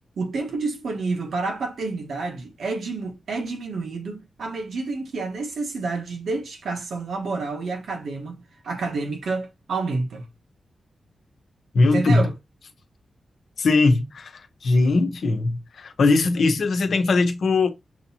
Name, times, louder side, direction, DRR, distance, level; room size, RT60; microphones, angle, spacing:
voice 1, 0.2-10.3 11.8-12.3, right 3 dB, 75° right, 1.2 m, -29 dB
voice 2, 11.7-12.2 13.6-17.7, left 3 dB, 65° left, 0.9 m, -20 dB
6.3 x 3.0 x 2.8 m
wide cardioid pair, 140°, 0 cm